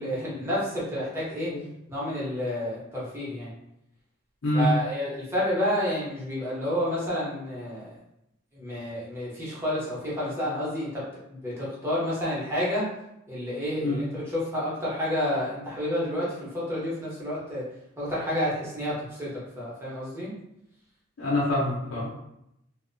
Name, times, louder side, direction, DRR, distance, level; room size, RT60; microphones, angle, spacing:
voice 1, 0.0-1.5 1.9-3.5 4.5-7.9 8.5-11.0 11.3-12.9 13.3-17.6 18.0-20.3, equal, 10° right, -8 dB, 0.8 m, -30 dB
voice 2, 4.4-4.7 13.8-14.0 21.2-22.1, left 1 dB, 80° left, -6 dB, 0.6 m, -25 dB
2.5 x 2.1 x 2.5 m, 0.82 s
head